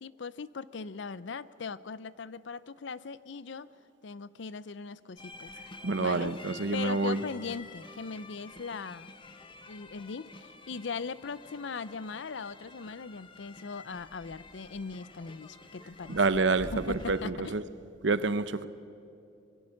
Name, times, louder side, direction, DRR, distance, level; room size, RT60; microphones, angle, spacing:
voice 1, 0.0-3.7 4.0-5.5 6.0-6.4 6.7-9.1 9.7-16.2 16.7-17.5, left 5 dB, 65° left, 0.6 m, -39 dB
sound 1, 5.2-17.2, left 2 dB, 25° left, 1.2 m, -49 dB
voice 2, 5.8-7.2 16.1-17.6 18.0-18.7, right 3 dB, 65° right, 0.8 m, -28 dB
25.5 x 21.5 x 6.5 m
head